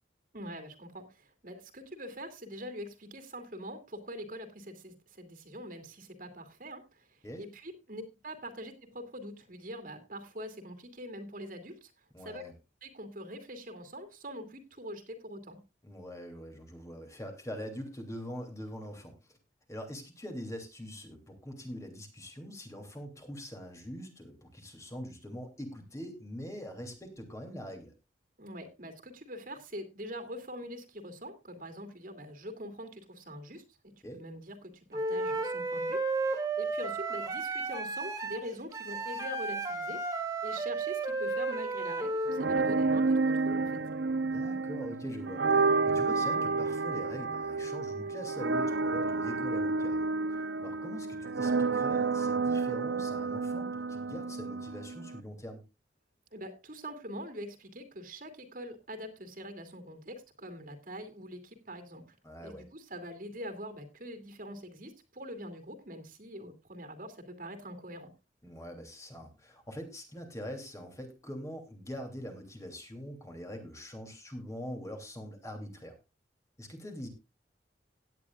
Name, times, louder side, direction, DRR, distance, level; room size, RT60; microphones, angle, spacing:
voice 1, 0.3-11.9 12.2-12.4 12.8-15.6 28.4-43.8 56.3-62.2 62.4-68.1, equal, 50° right, 7 dB, 2.5 m, -44 dB
voice 2, 12.1-12.5 15.8-19.4 19.7-27.9 34.0-34.2 44.3-55.6 62.2-62.6 68.4-76.0 76.6-77.1, equal, 15° left, 4 dB, 2.9 m, -43 dB
Wind instrument woodwind instrument, 34.9-42.4, right 3 dB, 20° right, 2.4 m, -33 dB
sound 1, 42.3-55.2, right 4 dB, 75° right, 0.7 m, -30 dB
17.5 x 10.0 x 2.4 m, 0.26 s
head